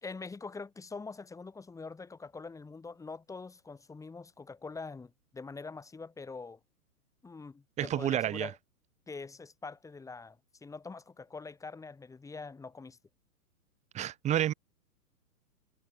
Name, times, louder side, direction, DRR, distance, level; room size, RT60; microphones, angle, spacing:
voice 1, 0.0-6.6 7.2-8.6 9.1-13.0, left 4 dB, 5° left, 1.6 m, -44 dB
voice 2, 7.8-8.5 13.9-14.5, right 12 dB, 15° right, 0.9 m, -29 dB
hypercardioid pair, 120°, 46 cm